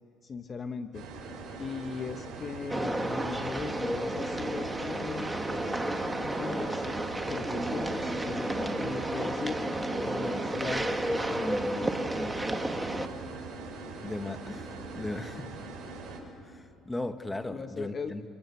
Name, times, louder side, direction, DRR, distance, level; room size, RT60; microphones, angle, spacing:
voice 1, 0.2-1.1 1.6-5.3 6.2-6.9 7.3-9.7 10.0-12.1 17.5-18.2, left 5 dB, 35° left, 9 dB, 1.0 m, -38 dB
sound 1, 0.9-16.2, right 3 dB, 55° right, 6.3 m, -42 dB
sound 2, 2.7-13.1, right 1 dB, 10° right, 1.8 m, -32 dB
voice 2, 14.0-15.5 16.4-18.2, left 2 dB, 15° left, 8 dB, 1.7 m, -37 dB
27.0 x 24.0 x 7.2 m, 2.4 s
supercardioid pair, 75°, 0 cm